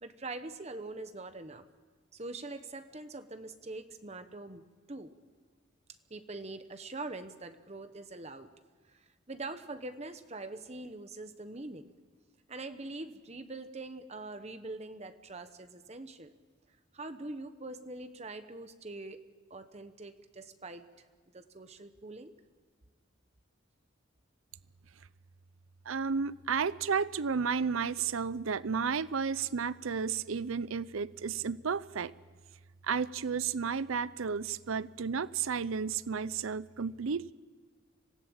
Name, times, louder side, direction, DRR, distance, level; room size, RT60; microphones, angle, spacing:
voice 1, 0.0-1.7 2.1-4.6 4.9-5.1 6.1-8.5 8.9-11.9 12.5-16.3 16.9-19.2 19.5-20.9 21.3-22.3, right 2 dB, 30° right, 9 dB, 1.0 m, -43 dB
voice 2, 25.9-32.1 32.8-37.3, right 6 dB, 80° right, 18 dB, 0.6 m, -32 dB
26.0 x 18.0 x 8.7 m, 1.5 s
head